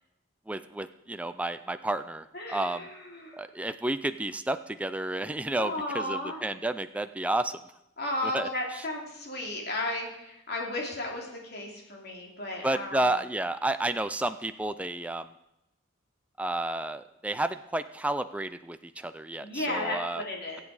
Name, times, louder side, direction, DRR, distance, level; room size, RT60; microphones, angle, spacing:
voice 1, 0.5-2.8 3.3-7.6 8.3-8.5 12.6-15.3 16.4-20.2, right 1 dB, 5° right, 10 dB, 0.4 m, -31 dB
voice 2, 2.3-3.4 5.5-6.4 8.0-13.0 19.4-20.6, left 1 dB, 50° left, -1 dB, 2.9 m, -34 dB
22.0 x 8.2 x 4.9 m, 0.87 s
head